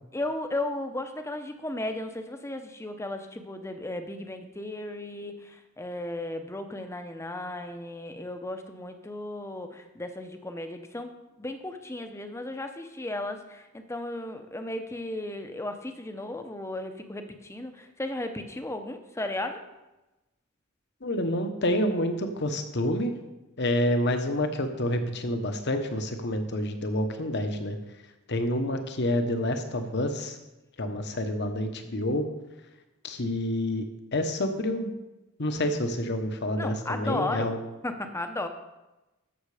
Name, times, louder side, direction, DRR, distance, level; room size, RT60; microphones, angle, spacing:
voice 1, 0.1-19.6 36.6-37.5 37.8-38.5, left 1 dB, 15° left, 7 dB, 0.8 m, -35 dB
voice 2, 21.0-23.1 23.6-27.8 28.3-30.4 30.8-32.3 33.0-33.8 34.1-34.9 35.4-37.6, left 1 dB, 55° left, 7 dB, 1.1 m, -28 dB
13.5 x 6.5 x 5.0 m, 1.0 s
head